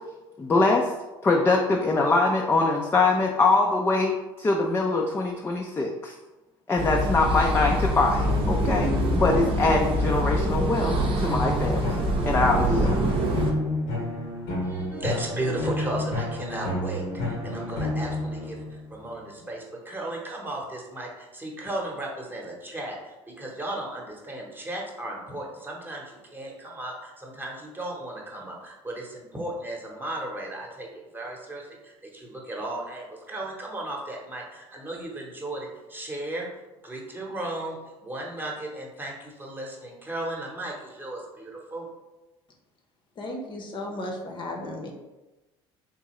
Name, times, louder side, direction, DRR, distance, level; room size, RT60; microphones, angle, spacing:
voice 1, 0.4-0.9 1.2-6.1 6.7-12.0 12.2-13.0, left 3 dB, 20° left, 0 dB, 0.4 m, -23 dB
sound 1, 6.8-13.5, right 1 dB, 45° right, 0.7 m, -25 dB
sound 2, 8.2-9.9 11.2-19.0, left 1 dB, 75° left, 0.9 m, -30 dB
voice 2, 14.6-36.5 36.8-41.9, right 1 dB, 15° right, -2 dB, 1.0 m, -35 dB
voice 3, 43.2-44.9, left 1 dB, 40° left, 1 dB, 0.8 m, -34 dB
3.6 x 2.7 x 3.0 m, 1.1 s
hypercardioid pair, 80°, 13 cm